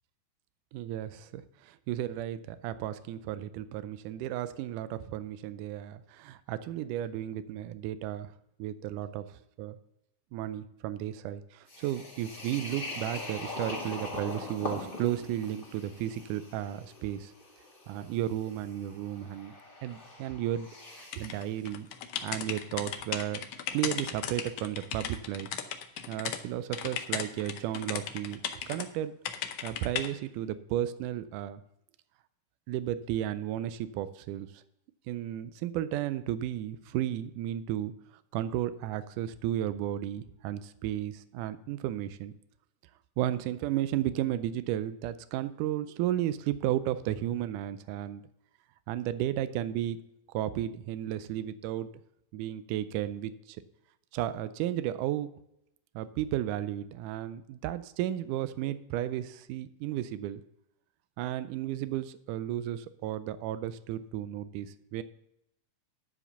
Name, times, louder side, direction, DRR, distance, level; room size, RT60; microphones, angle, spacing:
voice 1, 0.7-8.3 8.6-9.3 9.6-9.8 10.3-17.3 17.9-19.6 19.8-20.7 21.0-21.9 22.2-23.5 23.7-25.5 26.1-28.4 28.7-29.2 29.6-31.6 32.7-34.6 35.1-37.9 38.3-42.3 43.2-48.2 48.9-50.0 50.3-51.9 52.3-53.6 54.1-55.3 56.0-60.4 61.2-65.0, right 12 dB, 85° right, 13 dB, 2.1 m, -33 dB
sound 1, 11.7-21.5, left 2 dB, 20° left, 1.5 m, -42 dB
sound 2, 21.1-26.4 26.7-28.9 29.2-30.1, left 9 dB, 75° left, 1.4 m, -36 dB
11.0 x 5.0 x 6.6 m, 0.81 s
omnidirectional pair, 3.6 m